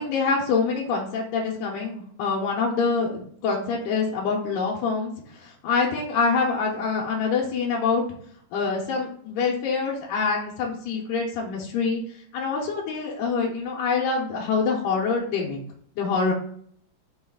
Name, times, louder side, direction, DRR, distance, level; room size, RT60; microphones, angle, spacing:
voice 1, 0.0-8.0 8.5-12.0 12.3-15.6 16.0-16.3, left 4 dB, 90° left, -2 dB, 2.2 m, -25 dB
5.7 x 2.3 x 3.5 m, 0.62 s
omnidirectional pair, 3.6 m